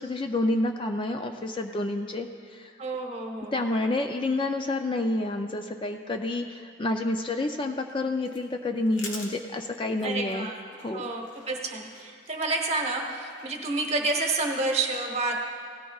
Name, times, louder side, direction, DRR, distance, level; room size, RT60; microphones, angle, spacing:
voice 1, 0.0-2.7 3.5-10.5 10.8-11.0, left 2 dB, 25° left, 5 dB, 0.4 m, -29 dB
voice 2, 2.8-3.6 10.0-10.5 10.9-15.4, right 3 dB, 35° right, 2 dB, 1.1 m, -29 dB
sound 1, 7.5-14.4, left 3 dB, 90° left, 1.6 m, -47 dB
17.5 x 13.5 x 2.4 m, 2.1 s
head